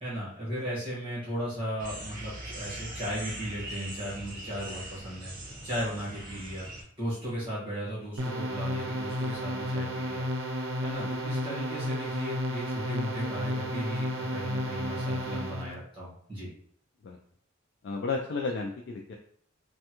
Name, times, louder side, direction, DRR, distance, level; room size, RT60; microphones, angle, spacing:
voice 1, 0.0-5.3 5.6-6.7 7.0-10.2 10.8-16.5, equal, 25° right, -9 dB, 1.4 m, -36 dB
sound 1, 1.8-6.8, right 1 dB, 45° right, 1.0 m, -41 dB
sound 2, 8.2-15.7, equal, 80° right, 0.5 m, -32 dB
voice 2, 17.8-19.1, left 4 dB, 60° left, 1 dB, 0.3 m, -33 dB
3.3 x 2.2 x 2.9 m, 0.63 s
head